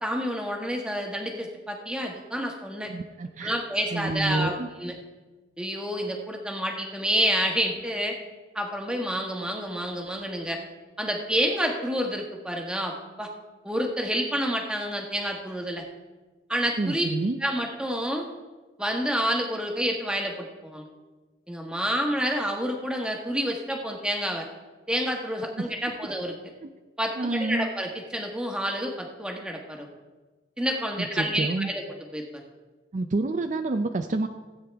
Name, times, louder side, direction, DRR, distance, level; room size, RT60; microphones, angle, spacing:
voice 1, 0.0-2.9 3.4-4.9 5.6-8.2 8.5-10.6 11.0-13.3 13.6-15.8 16.5-17.0 17.4-18.3 18.8-20.9 21.5-24.5 24.9-26.3 27.0-29.9 30.6-31.8 32.1-32.3, equal, 5° right, 1 dB, 1.2 m, -29 dB
voice 2, 2.9-3.6 3.9-4.7 16.8-17.4 26.6-26.7 27.2-27.7 31.0-31.7 32.9-34.3, right 2 dB, 45° right, 7 dB, 0.4 m, -28 dB
16.5 x 8.7 x 3.5 m, 1.3 s
head